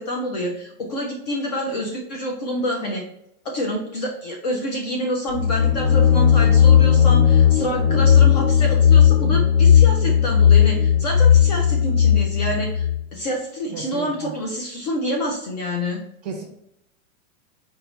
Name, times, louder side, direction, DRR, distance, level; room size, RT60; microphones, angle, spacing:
voice 1, 0.0-3.1 3.5-16.0, equal, 30° left, 0 dB, 0.4 m, -27 dB
sound 1, 5.3-13.0, left 8 dB, 65° left, 1.3 m, -15 dB
voice 2, 13.7-14.3 16.2-16.4, right 6 dB, 30° right, 1 dB, 0.5 m, -33 dB
4.6 x 2.1 x 3.9 m, 0.73 s
supercardioid pair, 165°, 44 cm